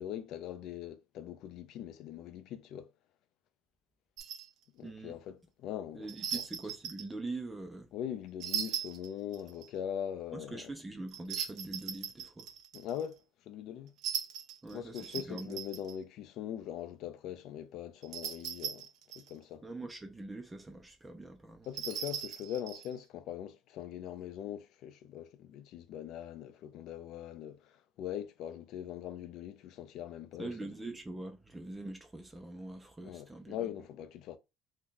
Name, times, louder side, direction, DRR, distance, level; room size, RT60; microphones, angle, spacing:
voice 1, 0.0-2.9 4.7-6.1 6.3-6.4 7.9-10.7 12.7-13.2 13.5-13.9 14.7-18.9 19.2-19.6 21.7-30.5 33.0-34.4, left 10 dB, 55° left, 0.4 m, -41 dB
sound 1, 4.2-4.5 6.1-7.1 8.4-9.7 11.1-13.0 14.0-16.0 18.0-19.3 21.6-22.9, right 8 dB, 60° right, 0.6 m, -39 dB
voice 2, 4.8-5.2 5.9-7.9 10.3-12.5 14.6-15.6 19.6-21.7 30.4-33.6, right 2 dB, 10° right, 0.4 m, -43 dB
2.7 x 2.3 x 3.6 m
cardioid pair, 145°, 0 cm